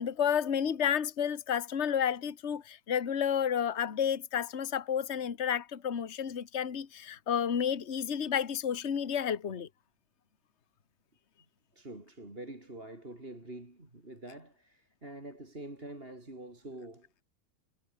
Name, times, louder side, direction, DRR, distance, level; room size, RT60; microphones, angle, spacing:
voice 1, 0.0-9.7, left 8 dB, 45° left, 0.9 m, -31 dB
voice 2, 11.7-17.1, right 1 dB, 15° right, 4.7 m, -46 dB
omnidirectional pair, 3.4 m